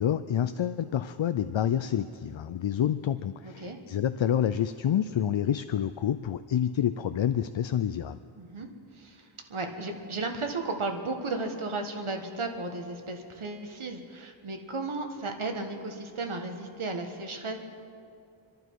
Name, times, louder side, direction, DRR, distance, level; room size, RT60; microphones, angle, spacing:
voice 1, 0.0-8.2, left 9 dB, 70° left, 11 dB, 0.5 m, -28 dB
voice 2, 3.4-3.8 8.4-8.7 8.9-17.6, right 3 dB, 85° right, 4 dB, 1.5 m, -34 dB
27.0 x 11.5 x 4.7 m, 2.5 s
wide cardioid pair, 65°, 48 cm